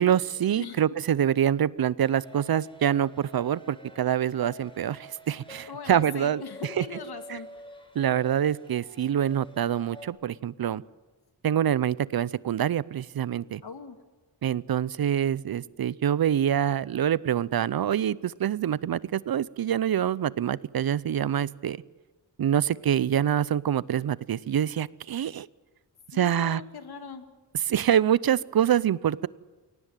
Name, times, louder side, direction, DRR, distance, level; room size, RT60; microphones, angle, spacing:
voice 1, 0.0-6.4 6.8-6.9 7.3-7.4 7.9-10.8 11.4-13.6 14.4-21.8 22.4-25.5 26.1-26.6 27.5-29.3, right 10 dB, 60° right, 21 dB, 0.6 m, -25 dB
sound 1, 2.0-10.1, equal, 10° left, 4.6 m, -48 dB
voice 2, 5.7-7.5 13.6-14.0 26.1-27.2, left 5 dB, 60° left, 8 dB, 2.5 m, -40 dB
23.0 x 18.0 x 9.0 m, 1.3 s
wide cardioid pair, 100°, 42 cm